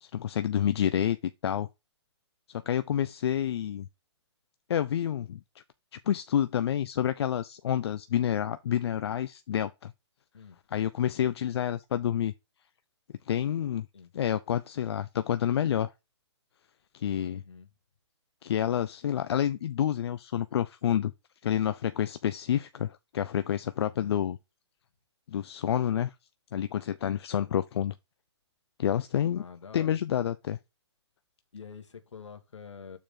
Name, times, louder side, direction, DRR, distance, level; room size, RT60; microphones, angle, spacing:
voice 1, 0.0-1.2 1.4-1.7 2.7-3.9 4.7-5.4 5.9-9.9 10.7-12.3 13.3-13.9 14.1-15.9 16.9-17.4 18.4-21.1 21.4-24.4 25.3-26.1 26.5-27.9 28.8-29.4 29.7-30.6, left 10 dB, 60° left, 0.5 m, -28 dB
voice 2, 11.0-11.4 13.9-14.1 17.3-17.7 23.8-24.2 29.3-30.0 31.5-33.0, left 6 dB, 80° left, 1.8 m, -47 dB
6.9 x 4.8 x 3.7 m
hypercardioid pair, 140°, 15 cm